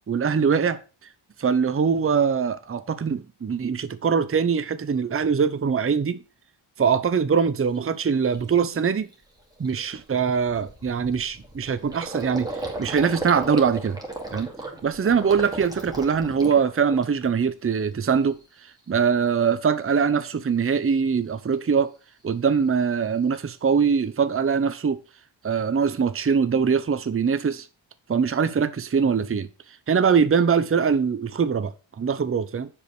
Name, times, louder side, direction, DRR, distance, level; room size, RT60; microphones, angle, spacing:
voice 1, 0.1-0.8 1.4-6.2 6.8-9.1 9.6-12.5 12.8-14.0 14.3-14.5 14.8-18.4 18.9-21.9 22.2-25.0 25.4-27.7 28.1-29.5 29.9-32.7, right 6 dB, 25° right, 0.7 m, -22 dB
Gurgling, 7.8-7.9 8.3-8.6 9.0-9.1 9.4-17.4 17.8-18.4, right 2 dB, 10° right, 2.3 m, -36 dB
7.3 x 5.2 x 6.6 m
cardioid pair, 90°, 49 cm